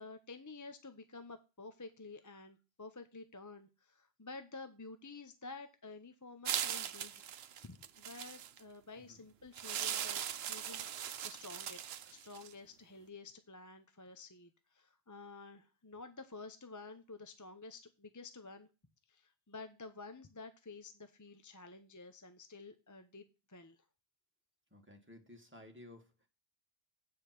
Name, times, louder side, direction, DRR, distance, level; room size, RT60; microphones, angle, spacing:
voice 1, 0.0-7.2 7.6-18.7 19.1-23.8, left 3 dB, 20° left, 8 dB, 0.7 m, -51 dB
sound 1, 6.5-8.6 9.6-12.5, right 9 dB, 80° right, 0.9 m, -40 dB
voice 2, 24.7-26.3, left 1 dB, 10° right, 2 dB, 1.7 m, -56 dB
8.5 x 5.2 x 5.8 m, 0.28 s
omnidirectional pair, 1.0 m